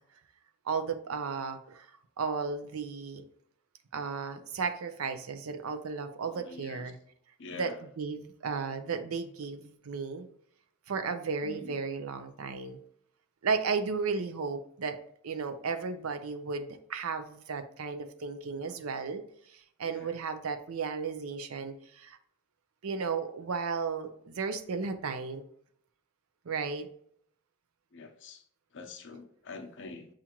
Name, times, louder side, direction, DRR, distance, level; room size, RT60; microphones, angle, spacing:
voice 1, 0.7-1.9 2.2-3.2 3.9-6.9 7.6-7.7 8.0-10.3 10.9-12.8 13.4-15.0 15.2-19.2 19.5-22.2 22.8-25.4 26.5-26.9, right 5 dB, 75° right, 9 dB, 0.5 m, -34 dB
voice 2, 6.3-6.9 7.4-7.8 11.4-11.8 19.8-20.2 27.9-28.5 28.7-30.1, left 4 dB, 60° left, 4 dB, 0.6 m, -45 dB
7.0 x 2.5 x 2.9 m, 0.67 s
head